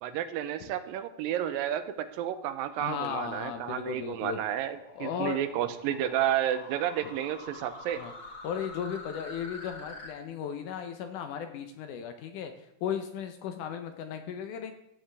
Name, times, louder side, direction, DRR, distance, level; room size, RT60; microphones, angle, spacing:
voice 1, 0.0-8.0, right 11 dB, 80° right, 11 dB, 2.3 m, -31 dB
sound 1, 2.3-10.1, left 2 dB, 30° left, 2.6 m, -48 dB
voice 2, 2.8-4.4 5.0-5.4 7.0-7.1 8.0-8.1 8.4-14.7, left 8 dB, 75° left, 7 dB, 2.0 m, -36 dB
15.0 x 7.7 x 3.4 m, 0.82 s
omnidirectional pair, 4.2 m